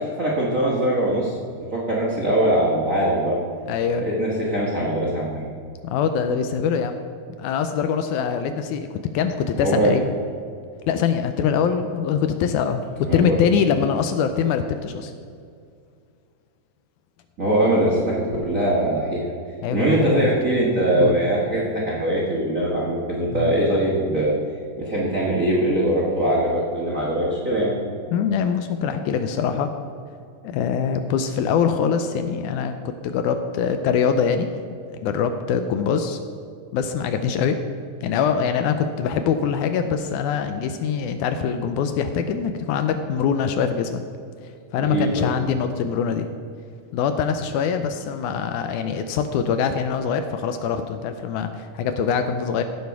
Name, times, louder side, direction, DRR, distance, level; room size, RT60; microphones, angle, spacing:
voice 1, 0.0-1.3 1.7-3.4 4.0-5.5 9.5-9.9 13.0-13.4 17.4-19.2 19.7-24.3 24.8-27.8 44.8-45.3, right 1 dB, 65° right, -5 dB, 0.7 m, -22 dB
voice 2, 3.7-4.1 5.8-7.1 7.4-8.9 9.1-10.1 10.9-15.1 19.6-20.3 20.9-21.2 23.3-23.5 28.1-29.7 30.4-34.5 35.0-36.2 36.7-37.6 38.0-44.0 44.7-46.3 46.9-52.6, left 7 dB, 80° left, 8 dB, 1.9 m, -23 dB
15.5 x 5.3 x 4.6 m, 2.3 s
omnidirectional pair, 3.8 m